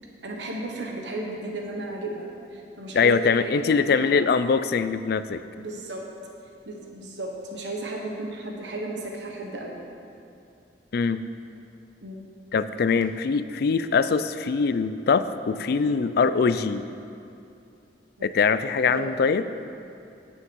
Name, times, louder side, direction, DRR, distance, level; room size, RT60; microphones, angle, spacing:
voice 1, 0.2-4.2 5.6-6.0 6.6-9.9 12.0-12.2 18.2-18.3 18.9-19.1, right 2 dB, 90° right, 0 dB, 1.2 m, -34 dB
voice 2, 2.9-5.4 10.9-11.2 12.5-16.8 18.2-19.4, left 5 dB, 60° left, 12 dB, 0.4 m, -22 dB
9.8 x 6.9 x 5.4 m, 2.6 s
head